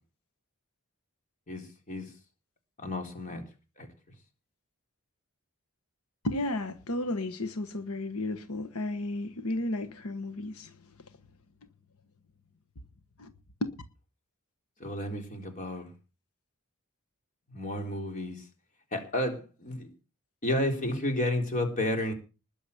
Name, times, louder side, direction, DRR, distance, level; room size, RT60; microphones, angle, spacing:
voice 1, 1.5-2.1 2.8-3.4 3.8-3.9 14.8-15.9 17.5-18.5 18.9-19.9 20.4-22.1, left 1 dB, 35° left, 3.8 m, -31 dB
voice 2, 6.2-10.7 13.2-13.3 13.6-13.8, left 1 dB, 85° left, 1.3 m, -33 dB
20.0 x 7.1 x 7.1 m
head